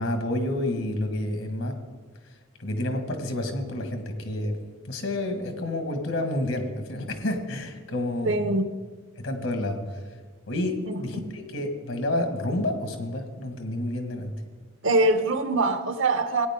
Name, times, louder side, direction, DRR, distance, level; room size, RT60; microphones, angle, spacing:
voice 1, 0.0-1.8 2.6-4.6 4.9-8.3 9.2-10.0 10.5-14.3, left 1 dB, 85° left, 5 dB, 1.8 m, -29 dB
voice 2, 8.2-8.7 10.9-11.3 14.8-16.5, right 2 dB, 75° right, 9 dB, 1.0 m, -24 dB
16.5 x 9.6 x 3.7 m, 1.5 s
head